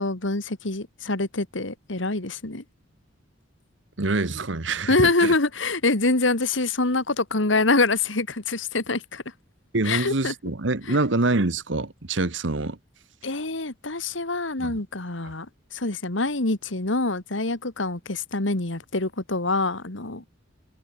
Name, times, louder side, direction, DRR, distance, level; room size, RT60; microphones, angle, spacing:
voice 1, 0.0-2.6 4.9-9.2 9.8-10.3 10.9-11.0 13.2-15.5 15.7-20.2, left 3 dB, 75° left, 2.3 m, -25 dB
voice 2, 4.0-5.3 9.7-12.8 14.6-14.7, right 2 dB, 70° right, 1.4 m, -25 dB
head